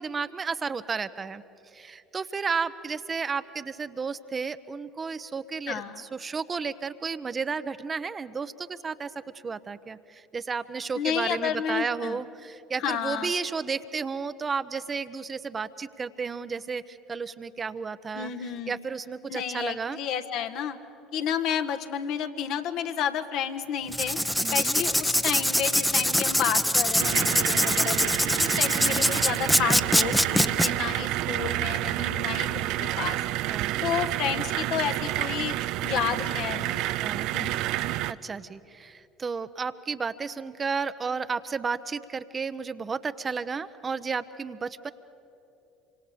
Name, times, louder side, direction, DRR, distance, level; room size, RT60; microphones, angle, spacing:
voice 1, 0.0-1.4 1.7-18.3 18.7-20.0 24.4-24.7 28.8-29.1 33.5-33.8 37.0-37.3 38.1-44.9, right 5 dB, 30° right, 12 dB, 0.9 m, -33 dB
voice 2, 5.7-6.1 10.9-12.2 12.8-13.3 18.1-18.7 19.3-20.8 21.1-24.2 24.5-33.2 33.8-36.9 37.3-37.6, left 8 dB, 55° left, 7 dB, 1.4 m, -31 dB
Writing, 23.9-30.7, equal, ahead, 0.9 m, -24 dB
sound 1, 27.0-38.1, right 15 dB, 60° right, 0.5 m, -29 dB
27.0 x 25.0 x 7.0 m, 2.8 s
figure-of-eight pair, 65°, 0 cm